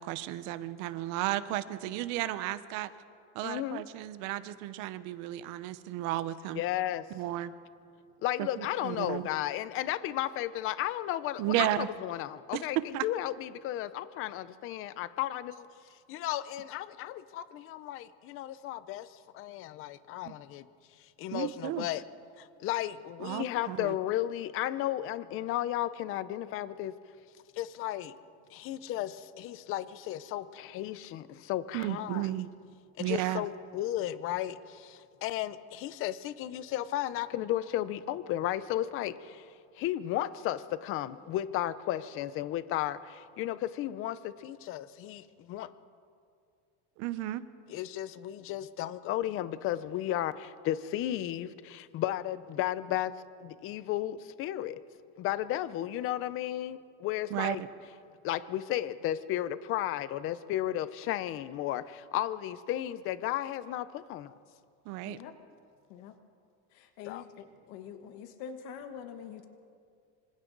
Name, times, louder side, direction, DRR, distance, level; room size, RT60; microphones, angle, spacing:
voice 1, 0.0-2.9 3.3-6.6 7.1-7.5 8.4-9.3 11.4-11.9 12.5-13.1 20.3-20.4 21.3-21.9 23.2-23.9 31.7-32.5 33.0-33.4 47.0-47.4 57.3-57.7 64.8-65.2, right 14 dB, 55° right, 13 dB, 0.9 m, -33 dB
voice 2, 3.4-3.8 6.5-7.1 8.2-15.7 16.1-20.7 21.0-22.0 22.4-26.9 27.5-28.1 28.5-32.3 33.0-45.7 47.7-53.1 53.4-54.8 55.2-57.6 58.2-64.3 67.0-67.2, left 13 dB, 35° left, 14 dB, 0.7 m, -34 dB
voice 3, 66.7-69.5, left 7 dB, 55° left, 7 dB, 1.4 m, -45 dB
26.0 x 26.0 x 4.0 m, 2.3 s
cardioid pair, 160°, 35 cm